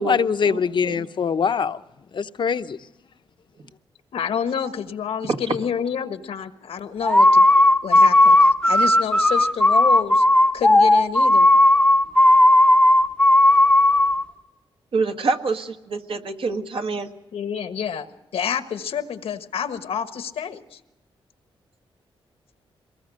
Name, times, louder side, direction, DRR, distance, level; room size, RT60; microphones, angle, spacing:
voice 1, 0.0-1.8 2.1-2.8, left 6 dB, 55° left, 0.8 m, -23 dB
voice 2, 4.1-7.4 7.8-10.2 10.5-11.5 17.3-18.1 18.3-20.8, left 7 dB, 90° left, 1.4 m, -28 dB
sound 1, 7.0-14.2, left 1 dB, 10° left, 0.8 m, -15 dB
voice 3, 14.9-17.1, right 3 dB, 65° right, 1.7 m, -26 dB
23.0 x 20.0 x 6.4 m
cardioid pair, 95°, 10 cm